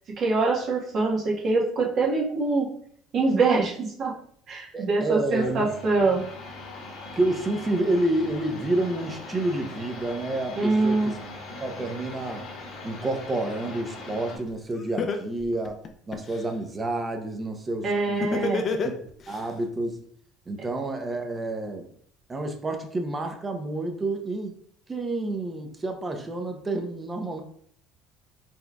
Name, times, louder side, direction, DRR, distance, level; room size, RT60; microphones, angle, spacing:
voice 1, 0.2-2.7 3.1-4.1 4.5-6.2 10.5-11.1 17.8-18.6, right 3 dB, 50° right, -3 dB, 1.2 m, -24 dB
voice 2, 4.7-5.7 7.1-11.2 11.6-12.4 12.8-15.8 16.1-18.9 19.3-20.0 20.5-21.9 22.3-24.5 24.9-27.4, right 2 dB, 25° right, 5 dB, 0.7 m, -29 dB
sound 1, 5.3-14.4, left 2 dB, 65° left, 1.1 m, -40 dB
Laughter, 14.5-14.6 15.0-16.4 18.2-19.4, left 4 dB, 45° left, 0.5 m, -27 dB
4.3 x 3.4 x 2.3 m, 0.62 s
supercardioid pair, 90°, 0 cm